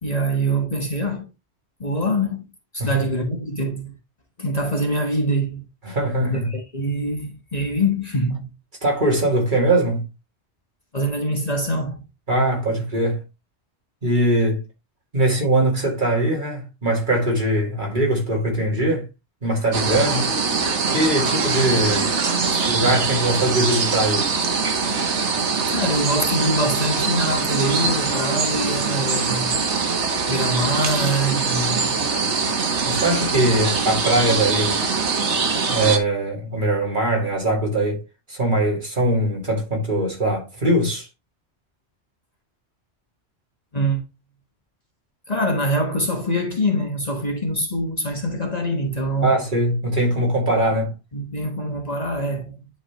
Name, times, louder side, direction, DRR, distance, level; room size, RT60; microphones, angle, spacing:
voice 1, 0.0-1.3 1.8-2.5 2.7-4.0 4.4-5.7 6.2-8.5 10.9-12.0 22.5-22.7 25.7-29.6 30.3-32.0 43.7-44.1 45.3-49.4 51.1-52.7, equal, 35° left, 1.4 m, -24 dB
voice 2, 5.8-6.5 8.8-10.1 12.3-13.2 14.0-14.6 15.1-19.1 19.4-20.3 20.6-22.1 22.6-24.3 32.8-34.8 35.7-38.0 38.3-41.1 49.2-51.0, right 1 dB, 45° right, 2.6 m, -21 dB
sound 1, 19.7-36.0, right 5 dB, 80° right, 1.4 m, -23 dB
10.5 x 4.0 x 2.9 m
omnidirectional pair, 1.2 m